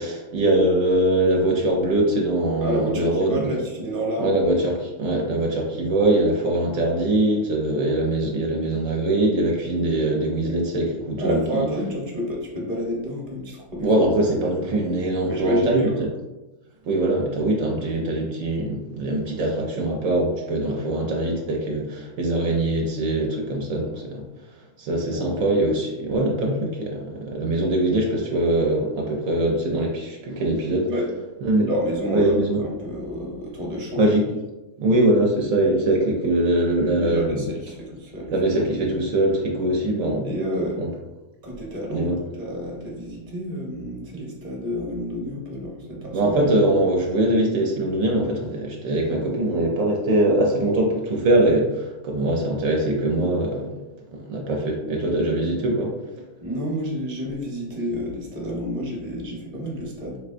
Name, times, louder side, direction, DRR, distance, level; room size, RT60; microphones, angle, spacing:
voice 1, 0.0-3.6 4.2-11.7 13.8-15.9 16.8-24.2 24.8-30.9 31.4-31.7 32.1-32.6 34.0-34.3 34.8-37.5 38.3-40.3 40.8-40.9 41.9-42.2 46.1-53.8 54.1-55.9, right 1 dB, 75° right, -1 dB, 1.0 m, -22 dB
voice 2, 2.6-4.6 11.2-13.9 15.2-16.0 25.1-25.5 30.9-31.1 31.6-34.1 36.9-38.3 40.2-40.8 41.4-46.6 56.4-60.2, equal, 30° right, -3 dB, 0.9 m, -29 dB
3.8 x 3.2 x 2.5 m, 1.1 s
omnidirectional pair, 1.5 m